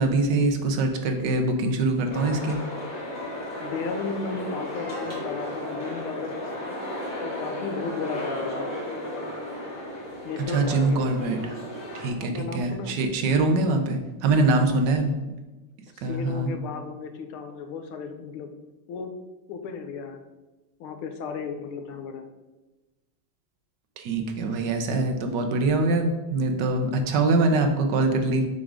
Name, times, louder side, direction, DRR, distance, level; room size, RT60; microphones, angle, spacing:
voice 1, 0.0-2.6 10.4-11.5 11.9-15.1 16.0-16.5 24.0-28.4, right 2 dB, 65° right, 5 dB, 1.2 m, -23 dB
sound 1, 2.1-12.1, left 1 dB, 30° left, 1.9 m, -34 dB
voice 2, 3.6-6.8 7.2-8.7 10.2-11.1 12.2-13.0 15.9-18.5 18.9-19.1 19.5-20.2 20.8-22.2, left 5 dB, 80° left, 6 dB, 1.6 m, -34 dB
6.1 x 3.7 x 4.9 m, 1.1 s
omnidirectional pair, 2.3 m